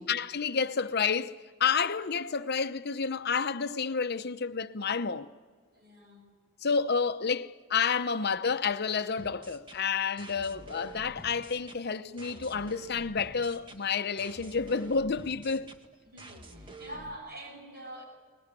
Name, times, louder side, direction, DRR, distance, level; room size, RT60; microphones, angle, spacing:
voice 1, 0.0-1.3 1.6-5.3 6.6-15.7, left 5 dB, 50° left, 0.8 m, -30 dB
voice 2, 5.7-6.3 16.1-18.0, right 1 dB, 50° right, 7.6 m, -45 dB
sound 1, 9.2-17.2, right 2 dB, 25° right, 1.6 m, -48 dB
22.0 x 20.5 x 9.9 m
head